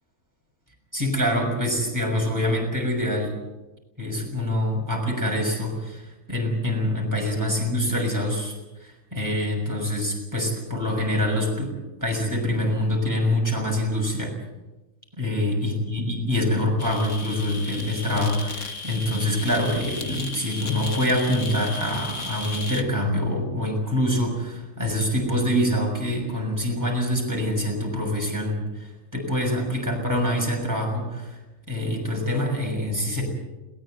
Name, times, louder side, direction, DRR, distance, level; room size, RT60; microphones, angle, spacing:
voice 1, 0.9-3.3 4.0-8.5 8.8-11.7 12.0-14.3 15.2-31.4 31.7-33.2, left 1 dB, 10° right, 0 dB, 6.5 m, -25 dB
sound 1, 16.8-22.8, left 3 dB, 60° left, 1.9 m, -35 dB
21.5 x 19.0 x 8.0 m, 1.1 s
omnidirectional pair, 1.5 m